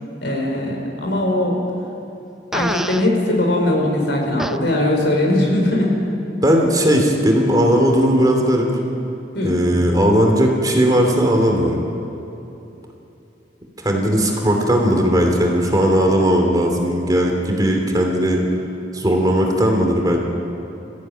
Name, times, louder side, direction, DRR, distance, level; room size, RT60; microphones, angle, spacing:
voice 1, 0.2-1.6 2.5-5.9 9.3-9.6, left 1 dB, 70° left, 0 dB, 4.7 m, -20 dB
Fart, 2.5-3.1 4.4-4.6, right 1 dB, ahead, 0.4 m, -25 dB
voice 2, 6.4-8.7 9.4-11.8 13.8-18.4 18.9-20.2, equal, 20° right, 1 dB, 2.9 m, -17 dB
23.5 x 15.0 x 9.2 m, 3.0 s
head